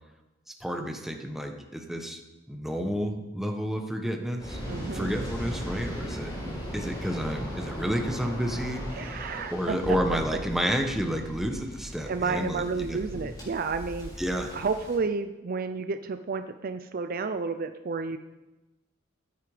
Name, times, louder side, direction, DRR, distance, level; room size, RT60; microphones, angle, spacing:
voice 1, 0.6-2.2 2.5-4.6 4.9-6.3 6.7-8.9 9.5-13.0 14.2-14.5, equal, ahead, 4 dB, 1.1 m, -30 dB
Waves surf, 4.4-15.0, equal, 20° left, 5.5 m, -37 dB
voice 2, 4.7-5.1 8.9-10.0 12.1-14.1 14.5-18.2, right 4 dB, 45° right, 9 dB, 0.5 m, -31 dB
14.5 x 9.2 x 5.0 m, 1.1 s
head